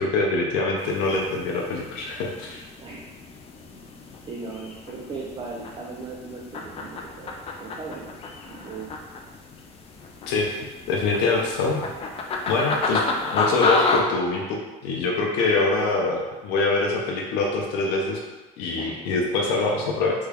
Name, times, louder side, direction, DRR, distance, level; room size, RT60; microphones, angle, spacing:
voice 1, 0.0-2.6 10.3-10.6 10.9-11.9 12.5-13.0 13.3-18.2 18.6-20.1, left 3 dB, 85° left, -1 dB, 0.5 m, -24 dB
sound 1, 0.8-14.0, left 3 dB, 35° left, 0.4 m, -31 dB
voice 2, 4.3-8.1 8.5-8.9 18.7-19.0, right 4 dB, 30° right, -4 dB, 0.4 m, -37 dB
3.4 x 2.3 x 3.3 m, 1.1 s
cardioid pair, 120°, 17 cm